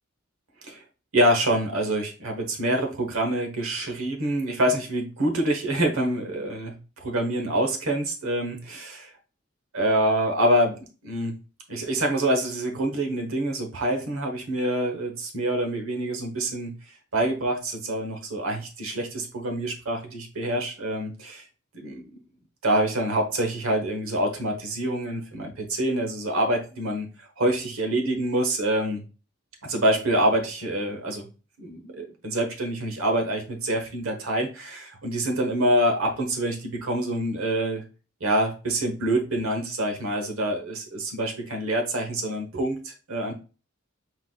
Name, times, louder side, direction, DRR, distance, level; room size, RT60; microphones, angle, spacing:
voice 1, 1.1-9.1 9.7-11.3 11.7-16.7 17.1-21.4 21.7-22.2 22.6-27.1 27.4-29.0 29.6-31.3 31.6-37.8 38.2-43.3, right 1 dB, 85° right, 4 dB, 1.2 m, -26 dB
4.7 x 3.9 x 2.3 m, 0.33 s
head